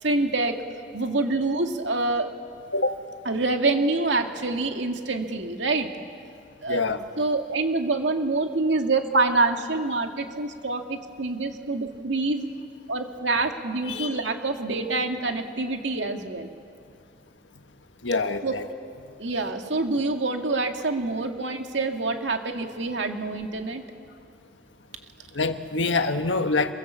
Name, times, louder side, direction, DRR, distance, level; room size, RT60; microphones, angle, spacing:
voice 1, 0.0-0.5 0.9-2.3 3.3-5.9 6.6-6.8 7.2-12.5 12.9-16.5 18.4-18.6 19.2-23.8, right 3 dB, 80° right, 4 dB, 2.1 m, -26 dB
voice 2, 6.7-7.0 13.9-14.1 18.0-18.7 25.3-26.7, left 3 dB, 85° left, 7 dB, 1.5 m, -25 dB
27.5 x 24.0 x 7.5 m, 2.4 s
head